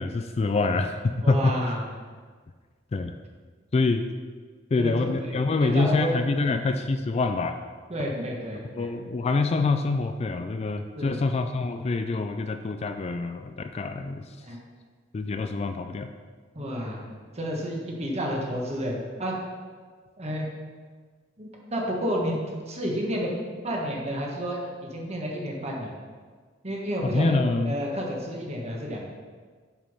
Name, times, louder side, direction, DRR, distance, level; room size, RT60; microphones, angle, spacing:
voice 1, 0.0-1.6 2.9-3.2 3.7-4.0 4.7-7.6 8.0-8.1 8.8-14.2 15.1-16.1 27.0-27.7, left 3 dB, 30° left, 8 dB, 0.3 m, -26 dB
voice 2, 1.2-1.8 4.8-5.3 5.6-6.6 7.9-8.9 11.0-11.2 14.4-14.6 16.5-17.1 17.3-19.3 20.2-20.4 21.4-22.4 22.7-23.3 23.6-25.9 26.6-27.4 27.6-29.1, equal, 35° right, -1 dB, 1.4 m, -31 dB
7.3 x 5.3 x 5.5 m, 1.5 s
head